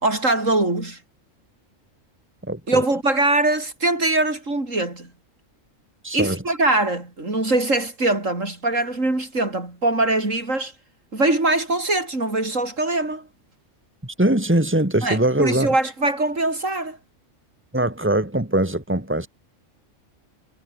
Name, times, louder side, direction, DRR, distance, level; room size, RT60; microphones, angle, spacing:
voice 1, 0.0-1.0 2.7-5.1 6.1-10.7 11.1-13.3 15.0-17.0, right 2 dB, 80° right, 5.8 m, -22 dB
voice 2, 2.4-2.8 6.0-6.4 14.0-15.7 17.7-19.3, right 1 dB, 10° right, 3.2 m, -22 dB
omnidirectional pair, 1.3 m